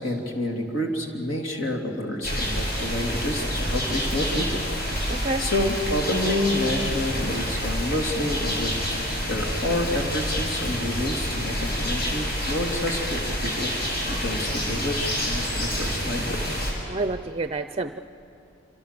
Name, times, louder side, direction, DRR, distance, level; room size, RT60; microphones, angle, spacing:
voice 1, 0.0-4.5 5.0-5.1 5.4-13.7 14.1-16.6, left 1 dB, 70° left, 2 dB, 3.1 m, -28 dB
sound 1, 2.2-16.7, equal, 50° left, 6.4 m, -28 dB
voice 2, 5.1-5.5 16.9-18.0, right 3 dB, 30° right, 11 dB, 0.5 m, -28 dB
27.0 x 26.0 x 7.0 m, 2.8 s
head